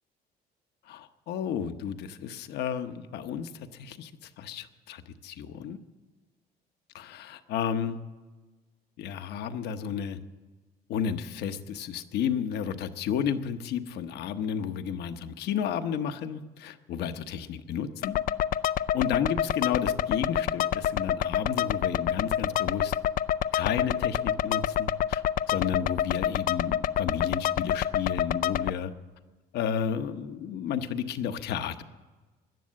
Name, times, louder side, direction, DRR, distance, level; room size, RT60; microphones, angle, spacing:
voice 1, 0.9-4.1 4.4-5.8 6.9-8.0 9.0-10.2 10.9-18.2 18.9-22.9 23.5-25.2 25.5-28.9 29.5-31.8, left 8 dB, 75° left, 9 dB, 1.0 m, -32 dB
sound 1, 18.0-28.7, left 10 dB, 55° left, 0.4 m, -28 dB
17.0 x 11.0 x 7.6 m, 1.3 s
cardioid pair, 110°, 17 cm